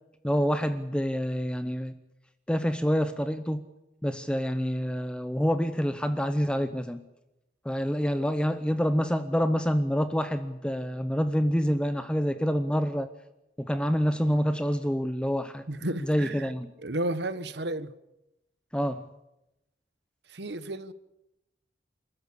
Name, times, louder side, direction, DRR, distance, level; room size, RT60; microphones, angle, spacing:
voice 1, 0.2-1.9 2.5-3.6 4.0-7.0 7.6-13.1 13.6-15.6 16.1-16.7 18.7-19.0, equal, 5° left, 0.8 m, -27 dB
voice 2, 15.7-16.5 16.8-17.9 20.3-20.9, right 1 dB, 70° right, 1.3 m, -32 dB
28.5 x 13.5 x 8.4 m
head